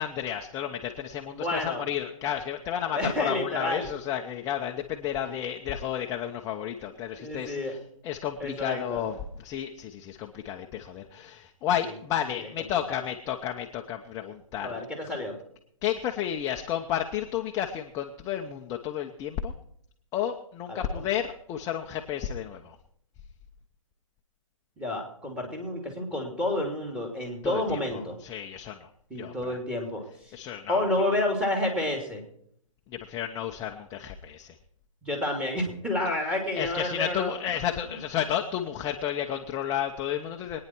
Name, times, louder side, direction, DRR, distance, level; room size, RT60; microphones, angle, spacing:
voice 1, 0.0-7.6 8.0-9.1 9.4-14.7 15.8-19.5 20.1-22.8 27.4-27.8 28.2-28.9 29.1-29.6 30.3-30.8 33.1-34.5 36.6-40.6, left 10 dB, 20° left, 2 dB, 0.8 m, -32 dB
voice 2, 1.3-1.8 2.9-3.9 5.1-5.3 7.2-7.7 8.4-9.0 11.8-11.9 12.4-12.5 12.9-13.0 14.6-15.4 20.7-21.1 24.8-28.2 29.1-30.3 30.7-32.2 35.0-37.3, left 1 dB, 5° right, 2 dB, 2.9 m, -30 dB
23.5 x 9.7 x 4.6 m, 0.69 s
hypercardioid pair, 150°, 17 cm